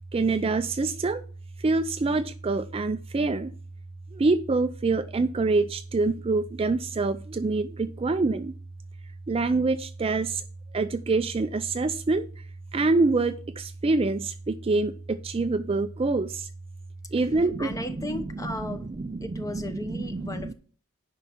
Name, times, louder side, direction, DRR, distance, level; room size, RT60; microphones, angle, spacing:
voice 1, 0.1-1.2 1.6-3.5 4.1-8.5 9.3-10.4 10.7-12.3 12.7-16.5 17.1-17.7 20.1-20.2, right 3 dB, 25° right, 0.4 m, -25 dB
voice 2, 17.2-18.9 19.2-20.5, left 1 dB, 15° left, 1.0 m, -36 dB
9.9 x 5.5 x 5.7 m
head